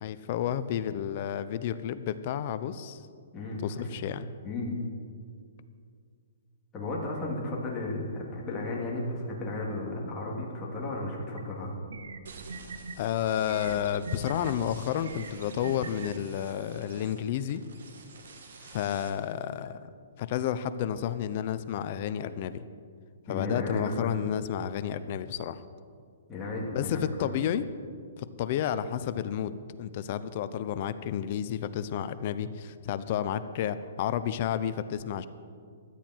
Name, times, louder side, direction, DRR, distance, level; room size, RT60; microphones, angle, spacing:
voice 1, 0.0-3.0 3.6-4.3 13.0-17.6 18.7-19.9 20.2-22.6 23.3-25.6 26.7-27.7 28.4-35.3, left 10 dB, 40° left, 13 dB, 0.7 m, -31 dB
voice 2, 3.3-4.0 4.4-4.7 6.7-11.7 23.3-24.2 26.3-27.3, left 2 dB, 15° left, -4 dB, 2.9 m, -34 dB
sound 1, 11.4-11.5 11.9-13.0 13.5-14.5 15.0-16.1, right 5 dB, 85° right, 1.0 m, -41 dB
sound 2, 12.3-19.1, right 4 dB, 70° right, 2.1 m, -49 dB
16.5 x 12.0 x 4.6 m, 2.1 s
hypercardioid pair, 160°, 0 cm